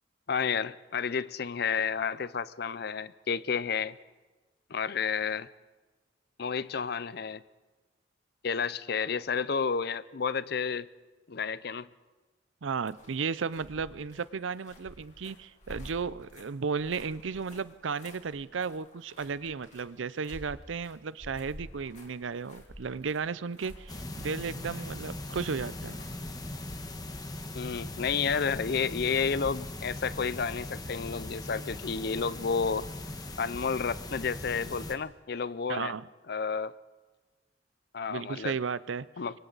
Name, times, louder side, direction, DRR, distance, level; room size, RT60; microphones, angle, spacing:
voice 1, 0.3-4.0 4.7-5.5 6.4-7.4 8.4-10.9 11.3-11.9 27.5-32.9 33.4-35.9 36.3-36.8 37.9-38.6 39.2-39.3, left 6 dB, 55° left, 17 dB, 0.5 m, -31 dB
voice 2, 12.6-26.0 35.7-36.0 38.1-39.1, right 5 dB, 85° right, 18 dB, 0.6 m, -34 dB
sound 1, 12.8-27.0, left 1 dB, 40° left, 3.1 m, -51 dB
sound 2, 23.9-34.9, left 1 dB, 20° left, 1.3 m, -40 dB
27.0 x 24.0 x 4.0 m, 1.2 s
head